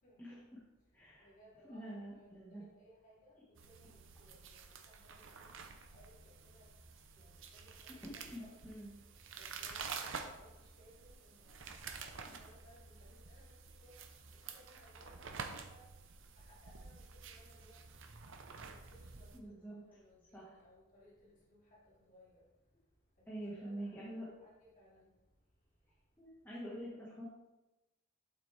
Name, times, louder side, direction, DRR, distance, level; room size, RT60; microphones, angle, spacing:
voice 1, 0.0-0.4 1.2-5.6 5.9-6.1 6.4-6.7 7.2-8.7 9.3-11.6 12.0-13.5 13.8-14.0 14.3-15.8 16.4-17.8 18.6-21.8 22.1-22.4 23.3-25.1, equal, 40° left, 3.3 m, -64 dB
voice 2, 0.9-1.3 1.6-2.6 8.0-8.9 12.2-12.4 19.3-19.8 20.3-20.5 23.3-24.3 26.2-27.3, right 1 dB, 10° left, 1.5 m, -46 dB
sound 1, 3.5-19.4, right 5 dB, 60° right, 0.8 m, -49 dB
8.9 x 8.0 x 3.4 m
head